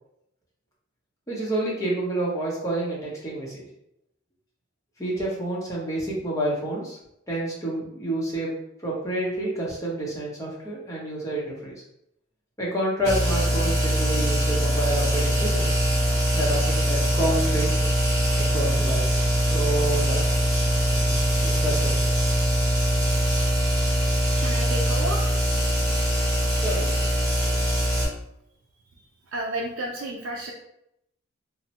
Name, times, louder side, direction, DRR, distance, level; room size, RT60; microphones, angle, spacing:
voice 1, 1.3-3.7 5.0-7.0 7.3-8.5 8.8-11.7 12.6-15.7 16.3-17.7 18.4-20.2 20.9-21.2 21.4-21.9 26.6-27.0, right 1 dB, 15° left, -5 dB, 0.8 m, -29 dB
sound 1, 13.0-28.0, equal, 20° right, 1.0 m, -22 dB
voice 2, 24.4-25.2 29.3-30.5, right 1 dB, 85° right, -2 dB, 0.4 m, -31 dB
3.0 x 2.1 x 2.8 m, 0.79 s
head